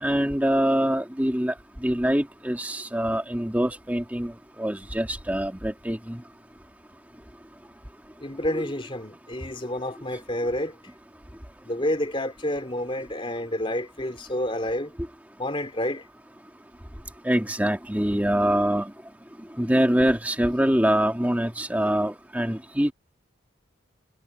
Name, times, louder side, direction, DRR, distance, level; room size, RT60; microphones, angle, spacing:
voice 1, 0.0-1.5 1.8-4.3 4.6-6.2 8.5-8.6 17.2-18.9 19.6-22.9, equal, 10° right, 1.8 m, -24 dB
voice 2, 8.2-10.7 11.6-14.9 15.4-16.0, left 1 dB, 25° left, 3.4 m, -29 dB
head